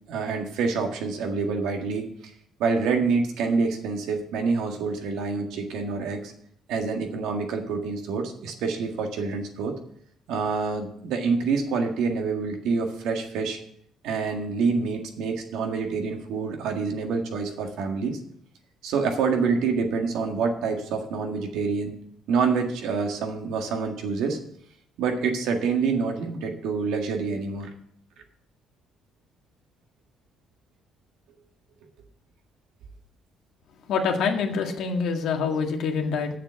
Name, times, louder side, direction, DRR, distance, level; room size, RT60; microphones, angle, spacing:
voice 1, 0.1-2.1 2.6-6.3 6.7-9.8 10.3-13.6 14.0-18.2 18.8-22.0 22.3-24.4 25.0-27.7 31.3-31.4, right 4 dB, 80° right, 3 dB, 1.8 m, -27 dB
voice 2, 33.9-36.3, left 5 dB, 70° left, 3 dB, 1.8 m, -25 dB
7.3 x 7.1 x 8.2 m, 0.67 s
cardioid pair, 95°, 0 cm